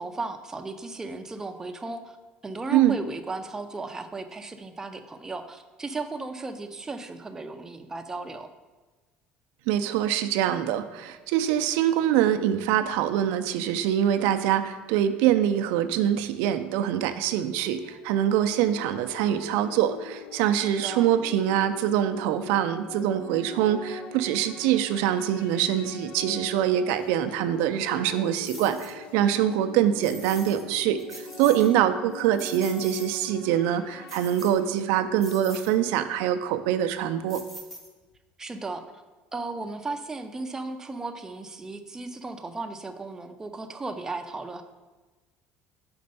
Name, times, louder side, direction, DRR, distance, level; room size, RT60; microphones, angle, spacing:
voice 1, 0.0-2.2 2.4-8.5 20.6-21.1 31.6-31.9 38.4-38.9 39.3-44.6, right 3 dB, 15° right, 6 dB, 0.5 m, -35 dB
voice 2, 9.7-37.4, right 10 dB, 85° right, 9 dB, 0.4 m, -24 dB
sound 1, 17.4-34.7, left 4 dB, 75° left, 0.6 m, -42 dB
sound 2, 28.4-29.0 30.0-30.6 31.0-31.7 32.1-33.3 34.1-34.8 35.2-35.8 37.3-38.1, equal, 5° left, 1.0 m, -44 dB
5.2 x 4.3 x 5.4 m, 1.2 s
cardioid pair, 125°, 4 cm